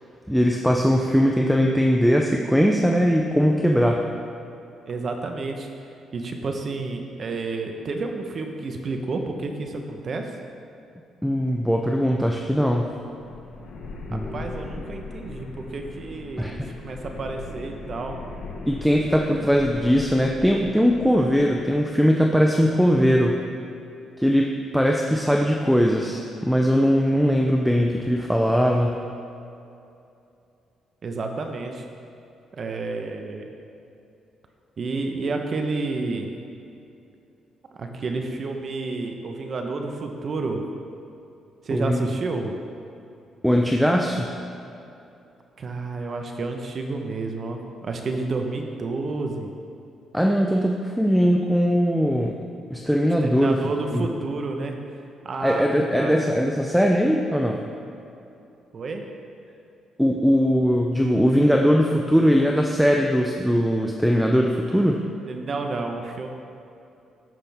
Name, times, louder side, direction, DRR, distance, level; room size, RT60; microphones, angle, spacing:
voice 1, 0.3-4.0 11.2-12.9 14.1-14.3 16.4-16.7 18.7-23.4 24.2-29.0 41.7-42.0 43.4-44.3 50.1-52.4 52.7-53.6 53.9-54.1 55.4-57.6 60.0-65.0, equal, ahead, 1 dB, 0.6 m, -20 dB
voice 2, 4.9-5.7 6.1-10.2 14.1-18.2 31.0-31.8 32.5-33.5 34.8-36.3 37.7-40.6 41.6-42.5 45.6-49.5 53.2-54.8 55.2-56.2 58.7-59.0 65.2-66.3, right 3 dB, 50° right, 4 dB, 1.0 m, -30 dB
sound 1, 12.3-21.8, left 3 dB, 75° left, 1.3 m, -39 dB
14.0 x 5.9 x 3.5 m, 2.7 s
cardioid pair, 90°, 0 cm